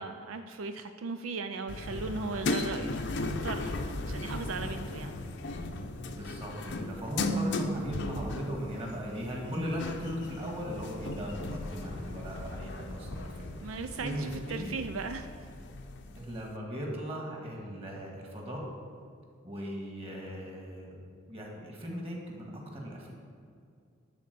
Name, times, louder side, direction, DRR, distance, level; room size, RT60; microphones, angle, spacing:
voice 1, 0.0-3.8 4.1-5.1 13.6-15.3, right 4 dB, 80° right, 8 dB, 0.4 m, -37 dB
sound 1, 1.7-16.5, left 2 dB, 60° left, 0.7 m, -37 dB
voice 2, 6.1-14.7 16.2-18.6 19.4-21.0 21.3-23.1, equal, 30° right, -1 dB, 1.8 m, -38 dB
12.5 x 4.3 x 6.9 m, 2.3 s
head